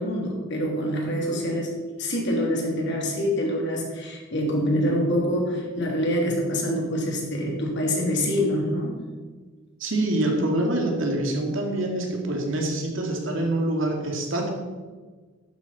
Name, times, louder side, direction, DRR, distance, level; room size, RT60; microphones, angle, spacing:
voice 1, 0.0-1.7 2.0-8.9, equal, 60° left, -1 dB, 2.8 m, -25 dB
voice 2, 9.8-14.5, right 1 dB, 70° right, 1 dB, 2.3 m, -25 dB
11.5 x 9.5 x 4.2 m, 1.4 s
head